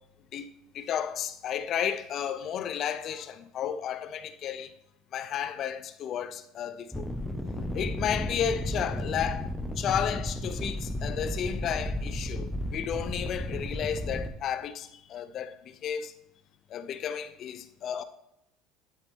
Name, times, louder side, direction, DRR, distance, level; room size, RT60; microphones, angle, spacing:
voice 1, 0.7-4.7 5.1-7.0 7.6-9.5 9.8-15.5 15.8-16.1 16.7-18.0, left 9 dB, 45° left, 0.5 m, -32 dB
sound 1, 6.9-14.3, left 1 dB, 5° left, 0.9 m, -33 dB
11.5 x 3.9 x 3.6 m
supercardioid pair, 115°, 0 cm